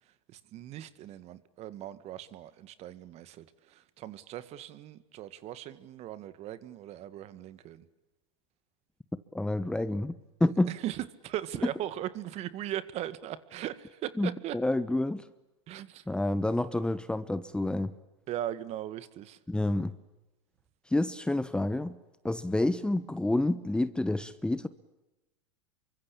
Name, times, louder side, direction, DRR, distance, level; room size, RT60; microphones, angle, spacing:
voice 1, 0.3-7.9 10.7-14.6 15.7-16.0 18.3-19.4, right 12 dB, 40° right, 2.0 m, -39 dB
voice 2, 9.3-10.7 14.2-15.2 16.1-17.9 19.5-19.9 20.9-22.0 22.2-24.7, left 2 dB, 5° left, 1.0 m, -29 dB
28.0 x 24.5 x 8.7 m
hypercardioid pair, 105°, 16 cm